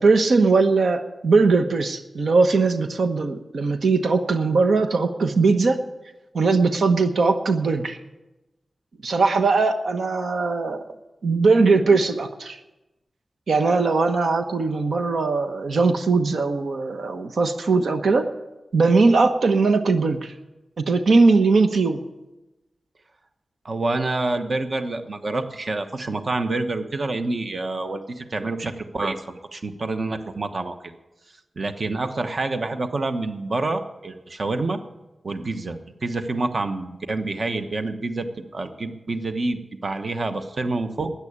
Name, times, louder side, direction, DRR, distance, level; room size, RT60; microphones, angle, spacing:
voice 1, 0.0-5.8 6.3-8.0 9.0-10.8 11.2-12.6 13.5-18.3 18.7-20.3 20.8-22.0, right 4 dB, 80° right, 7 dB, 1.0 m, -20 dB
voice 2, 23.6-30.9 31.6-34.8 35.2-41.1, right 2 dB, 45° right, 7 dB, 1.0 m, -27 dB
13.5 x 9.8 x 8.7 m, 1.0 s
wide cardioid pair, 110°, 0 cm